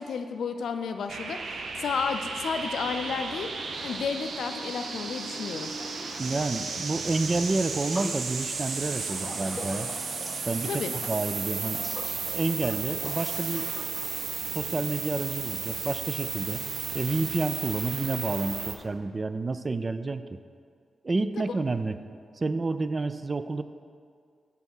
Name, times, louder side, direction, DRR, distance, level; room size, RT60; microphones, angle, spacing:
voice 1, 0.0-3.5 3.8-5.7 10.6-10.9 21.4-21.5, left 5 dB, 80° left, 7 dB, 0.5 m, -32 dB
sound 1, 1.1-18.8, right 5 dB, 75° right, 0.7 m, -34 dB
sound 2, 5.8-6.5 7.9-8.2 9.2-14.1, left 1 dB, 15° left, 0.5 m, -43 dB
voice 2, 6.2-9.9 10.5-11.8 12.3-13.7 14.5-16.6 16.9-20.4 21.0-22.0 22.4-23.6, right 3 dB, 40° right, 11 dB, 0.4 m, -29 dB
7.0 x 5.5 x 6.2 m, 2.2 s
cardioid pair, 60°, 0 cm